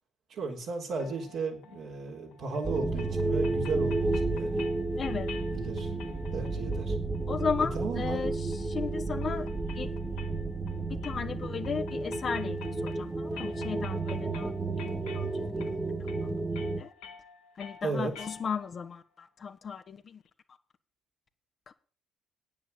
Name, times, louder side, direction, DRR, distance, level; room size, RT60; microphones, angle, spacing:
voice 1, 0.3-4.6 5.4-5.9 6.3-7.0 7.6-8.3 17.8-18.3, right 4 dB, 60° right, 3.9 m, -35 dB
sound 1, 1.0-18.8, left 7 dB, 75° left, 2.5 m, -50 dB
sound 2, 2.6-16.8, right 3 dB, 20° right, 1.9 m, -32 dB
voice 2, 4.9-5.3 7.3-8.4 8.7-9.5 9.7-9.9 11.0-14.5 14.8-15.7 16.2-16.3 16.8-16.9 17.6-20.2 21.7-21.8, left 6 dB, 45° left, 1.4 m, -35 dB
9.5 x 9.2 x 7.1 m
hypercardioid pair, 55°, 0 cm